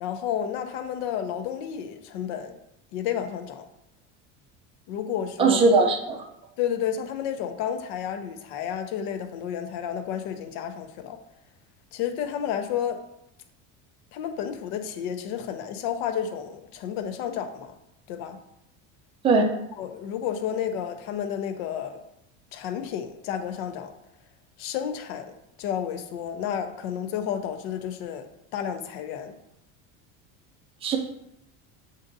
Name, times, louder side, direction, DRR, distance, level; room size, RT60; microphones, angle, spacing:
voice 1, 0.0-2.6 2.9-3.7 4.9-5.6 6.6-11.2 11.9-13.0 14.1-17.8 18.1-18.4 19.8-22.0 22.5-23.9 24.6-28.3 28.5-29.3, left 9 dB, 70° left, 7 dB, 0.7 m, -31 dB
voice 2, 5.4-6.2 19.2-19.5 30.8-31.0, right 3 dB, 15° right, 3 dB, 0.4 m, -19 dB
7.3 x 2.6 x 2.6 m, 0.82 s
cardioid pair, 135°, 36 cm